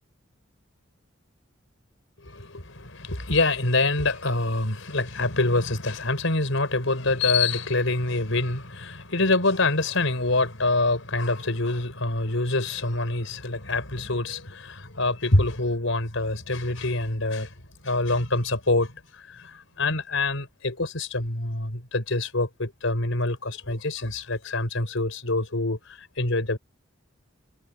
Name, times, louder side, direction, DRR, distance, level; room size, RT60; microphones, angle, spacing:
voice 1, 2.2-17.5 17.8-26.6, left 2 dB, 80° left, 4.3 m, -26 dB
head